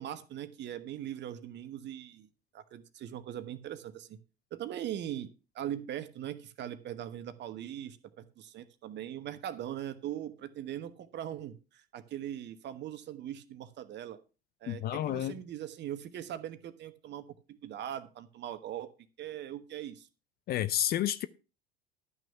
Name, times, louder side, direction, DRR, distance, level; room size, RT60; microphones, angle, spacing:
voice 1, 0.0-2.3 2.5-4.2 4.5-5.3 5.5-14.2 14.6-18.9 19.2-20.1, right 11 dB, 35° right, 1.2 m, -40 dB
voice 2, 14.7-15.4 20.5-21.3, left 12 dB, 30° left, 0.6 m, -30 dB
12.5 x 6.2 x 5.8 m
figure-of-eight pair, 75°, 30 cm